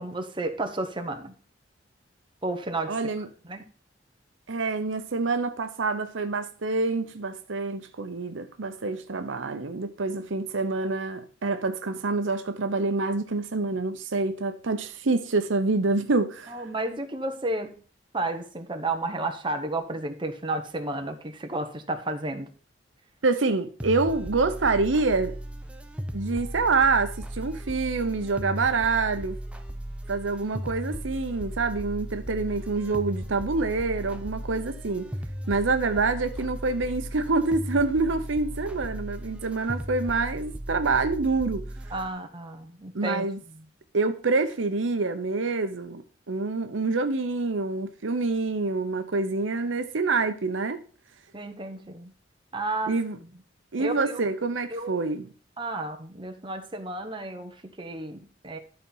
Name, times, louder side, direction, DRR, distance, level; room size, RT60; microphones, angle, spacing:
voice 1, 0.0-1.3 2.4-3.6 16.5-17.7 18.1-22.5 41.9-43.7 51.3-52.1 52.5-53.3 53.8-54.2 54.7-54.9 55.6-58.6, right 2 dB, 25° right, 1.1 m, -32 dB
voice 2, 2.9-3.3 4.5-16.6 23.2-25.4 26.1-29.4 30.1-35.1 35.5-41.7 42.9-43.4 43.9-50.8 52.9-53.2 53.7-55.3, right 3 dB, 85° right, 0.8 m, -26 dB
sound 1, 23.8-42.1, equal, 5° right, 0.7 m, -36 dB
12.0 x 4.4 x 5.5 m
head